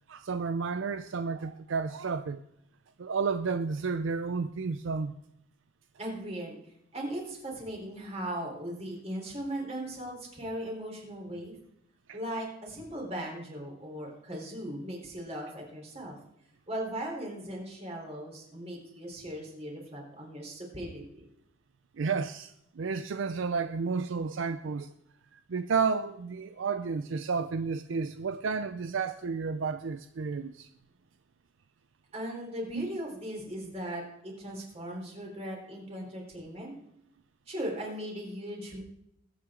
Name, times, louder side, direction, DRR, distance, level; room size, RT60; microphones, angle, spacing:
voice 1, 0.1-2.4 3.0-5.1 12.1-12.2 22.0-24.9 25.3-30.7 32.8-32.9, right 5 dB, 65° right, 0.5 m, -31 dB
voice 2, 6.0-6.6 6.9-11.5 12.1-16.2 16.7-21.3 32.1-36.7 37.5-38.8, right 1 dB, 30° right, 3.9 m, -38 dB
20.5 x 8.8 x 3.8 m
head